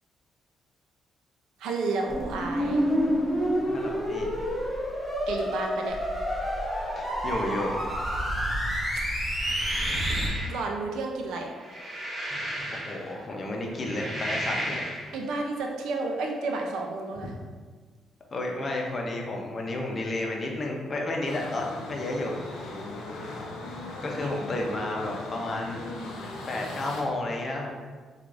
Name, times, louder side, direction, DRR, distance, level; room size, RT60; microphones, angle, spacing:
voice 1, 1.6-2.9 5.3-6.0 9.1-9.6 10.5-11.5 15.1-17.3 24.2-24.3, right 3 dB, 85° right, 2 dB, 0.4 m, -31 dB
sound 1, 2.1-10.3, equal, 5° right, 1.0 m, -28 dB
voice 2, 3.6-4.4 6.9-7.9 12.7-14.8 18.3-22.3 22.6-22.8 24.0-25.9 26.5-27.7, left 2 dB, 40° left, 0 dB, 0.6 m, -32 dB
sound 2, 9.2-10.7 11.5-13.2 13.7-15.1, right 1 dB, 35° right, 0.8 m, -34 dB
sound 3, 21.2-27.0, left 2 dB, 90° left, 0.5 m, -38 dB
4.6 x 2.5 x 2.5 m, 1.5 s
cardioid pair, 90°, 0 cm